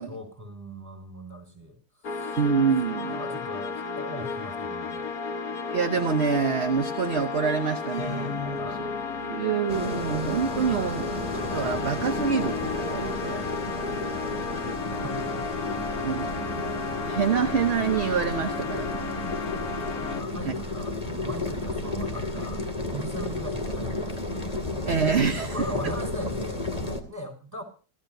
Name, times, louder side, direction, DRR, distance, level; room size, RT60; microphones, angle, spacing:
voice 1, 0.0-2.4 2.9-5.1 8.6-8.8 14.4-14.7 15.0-15.6 16.2-16.3 19.6-22.6 22.9-24.3 25.4-27.6, equal, 10° right, 5.9 m, -39 dB
sound 1, 2.0-20.2, left 4 dB, 70° left, 1.7 m, -33 dB
voice 2, 2.4-3.2 5.7-8.6 9.2-13.4 16.0-16.4 16.7-19.1 20.5-20.6 24.9-25.5, right 6 dB, 45° right, 1.2 m, -26 dB
sound 2, 9.7-27.0, left 2 dB, 25° left, 2.5 m, -33 dB
26.0 x 15.0 x 2.7 m
omnidirectional pair, 1.6 m